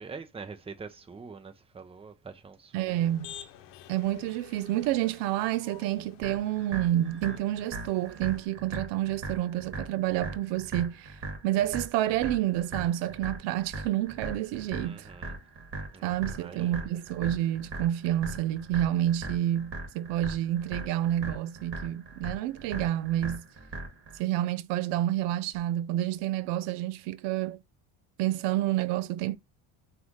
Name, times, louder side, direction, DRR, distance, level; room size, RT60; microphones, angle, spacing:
voice 1, 0.0-3.0 14.8-15.4 15.9-16.9, right 5 dB, 15° right, 0.7 m, -45 dB
voice 2, 2.7-3.3 3.9-11.2 11.4-15.1 16.0-23.5 24.2-27.6 28.2-29.4, right 13 dB, 90° right, 0.6 m, -29 dB
Motor vehicle (road), 2.9-8.5, left 10 dB, 80° left, 0.9 m, -50 dB
sound 1, 6.2-24.2, right 2 dB, 30° right, 2.2 m, -40 dB
5.4 x 2.6 x 3.1 m
cardioid pair, 130°, 41 cm